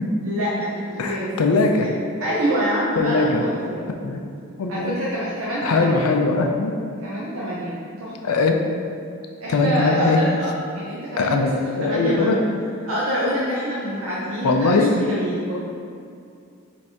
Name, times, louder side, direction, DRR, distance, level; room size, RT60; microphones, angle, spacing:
voice 1, 0.2-1.3 1.7-1.9 2.2-3.9 4.7-6.1 7.0-8.1 9.4-12.5 12.9-15.6, equal, 65° right, -6 dB, 0.7 m, -26 dB
voice 2, 1.0-1.9 3.0-3.4 4.0-4.2 4.6-4.9 5.6-6.7 8.2-8.6 9.5-10.2 11.2-11.5 11.8-12.4 14.4-14.9, left 3 dB, 80° left, 4 dB, 0.4 m, -20 dB
5.4 x 3.3 x 2.8 m, 2.4 s
head